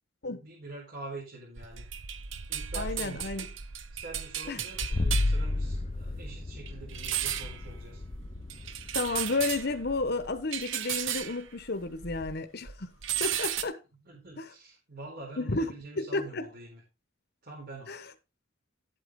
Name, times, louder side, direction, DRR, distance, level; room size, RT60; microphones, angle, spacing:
voice 1, 0.4-1.9 2.5-3.5 3.9-8.0 14.0-16.8 17.4-18.0, right 3 dB, 55° right, 4.1 m, -45 dB
sound 1, 1.6-12.4 12.7-13.6, right 9 dB, 80° right, 1.0 m, -36 dB
voice 2, 2.7-3.5 4.5-4.6 8.9-12.9 13.2-13.8 14.4-14.5 15.4-16.4 17.9-18.1, left 3 dB, 55° left, 1.1 m, -32 dB
sound 2, 4.8-10.4, left 2 dB, 35° left, 0.5 m, -32 dB
11.5 x 8.5 x 3.7 m
head